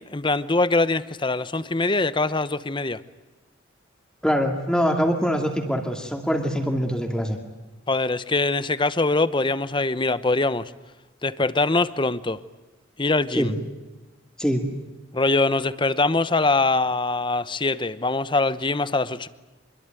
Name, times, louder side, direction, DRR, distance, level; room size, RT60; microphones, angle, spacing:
voice 1, 0.0-3.0 7.9-10.6 11.2-12.4 13.0-13.5 15.1-19.3, left 3 dB, 25° left, 15 dB, 0.8 m, -23 dB
voice 2, 4.2-7.4 13.4-13.5 14.4-14.7, equal, 5° left, 2 dB, 2.4 m, -23 dB
26.0 x 22.5 x 9.1 m, 1.2 s
head